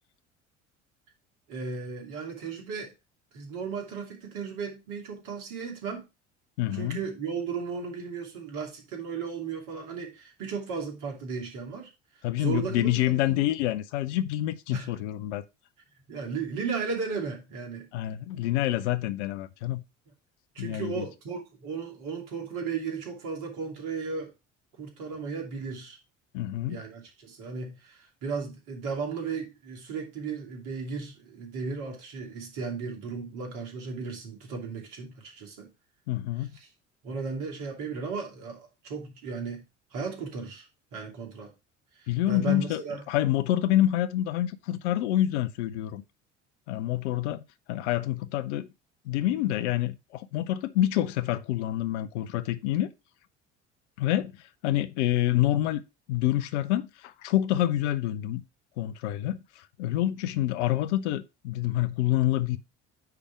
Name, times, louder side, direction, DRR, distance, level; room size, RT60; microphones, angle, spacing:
voice 1, 1.5-2.9 3.3-6.0 6.7-11.9 12.4-13.4 14.7-14.9 16.1-17.9 20.5-24.3 24.8-26.0 26.7-35.7 36.6-36.7 37.0-39.6 39.9-40.7 40.9-41.5 42.0-43.0, right 5 dB, 60° right, 2.7 m, -35 dB
voice 2, 6.6-7.0 12.2-15.4 17.9-19.8 20.6-21.0 26.3-26.8 36.1-36.5 42.1-42.8 43.1-46.0 46.7-47.4 47.7-48.7 49.0-52.9 54.0-54.4 54.6-55.8 56.1-58.4 58.8-62.6, left 13 dB, 65° left, 0.7 m, -27 dB
9.4 x 3.5 x 4.8 m
figure-of-eight pair, 60°, 37 cm